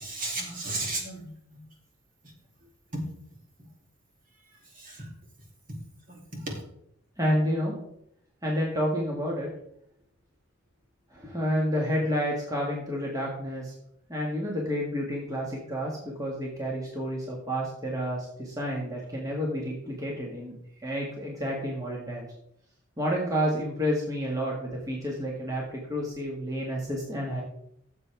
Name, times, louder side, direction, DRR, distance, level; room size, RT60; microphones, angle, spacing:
voice 1, 0.0-1.6 2.9-3.0 4.7-5.1 6.1-6.6, right 2 dB, 45° right, 0 dB, 2.8 m, -34 dB
voice 2, 7.2-7.8 8.4-9.5 11.1-13.7 14.1-22.3 23.0-27.4, equal, 20° right, -3 dB, 1.9 m, -30 dB
15.0 x 7.5 x 3.5 m, 0.74 s
head